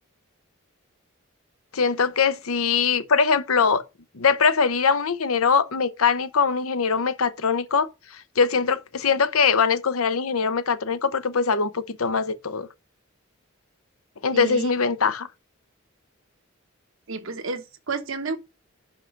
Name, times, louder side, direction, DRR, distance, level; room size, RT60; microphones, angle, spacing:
voice 1, 1.7-3.8 4.1-12.7 14.2-15.3, left 5 dB, 80° left, 0.8 m, -22 dB
voice 2, 14.3-14.7 17.1-18.4, right 3 dB, 65° right, 1.0 m, -31 dB
5.9 x 5.5 x 6.4 m
head